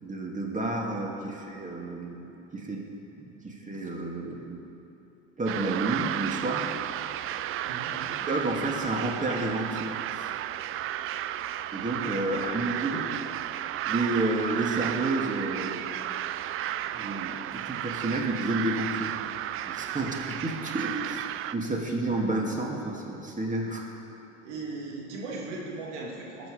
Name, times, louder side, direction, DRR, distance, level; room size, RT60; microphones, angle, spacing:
voice 1, 0.0-2.9 3.2-4.6 5.4-6.7 8.2-10.3 11.1-11.2 11.7-13.0 13.8-16.1 16.9-19.2 19.6-21.2 21.5-23.9, right 2 dB, 20° right, 0 dB, 2.4 m, -30 dB
sound 1, 5.5-21.5, right 12 dB, 35° right, 0.4 m, -33 dB
voice 2, 7.6-8.2 12.2-13.2 24.4-26.5, right 3 dB, 70° right, -3 dB, 2.9 m, -38 dB
18.5 x 7.2 x 5.1 m, 2.9 s
hypercardioid pair, 70°, 36 cm